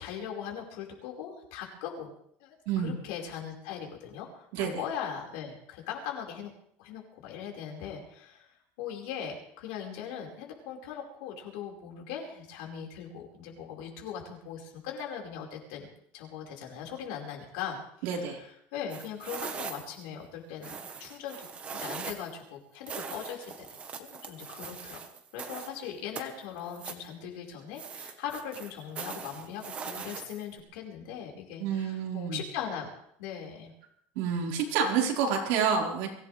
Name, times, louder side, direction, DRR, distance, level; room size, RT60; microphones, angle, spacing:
voice 1, 0.0-2.1 2.4-6.5 6.8-17.8 18.0-23.7 24.0-25.0 25.3-33.7, left 8 dB, 90° left, 1 dB, 5.0 m, -40 dB
voice 2, 18.0-18.4 31.6-32.4 34.1-36.1, right 6 dB, 75° right, -2 dB, 4.7 m, -28 dB
sound 1, 18.9-20.0 20.6-22.4 22.9-25.8 26.2-27.1 27.8-30.6, right 6 dB, 20° right, 1.3 m, -41 dB
24.0 x 16.5 x 3.4 m, 0.67 s
cardioid pair, 180°, 5 cm